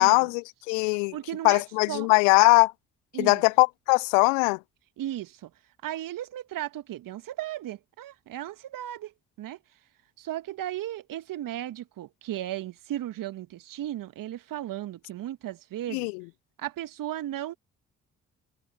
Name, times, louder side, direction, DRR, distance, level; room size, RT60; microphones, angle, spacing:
voice 1, 0.0-1.1 1.4-2.7 3.2-4.6 15.9-16.2, left 36 dB, 70° left, 1.0 m, -21 dB
voice 2, 1.1-1.6 1.9-2.1 3.1-3.4 5.0-5.5 5.8-9.1 9.4-9.6 10.2-16.1 16.6-17.5, right 13 dB, 55° right, 2.0 m, -35 dB
figure-of-eight pair, 45°, 38 cm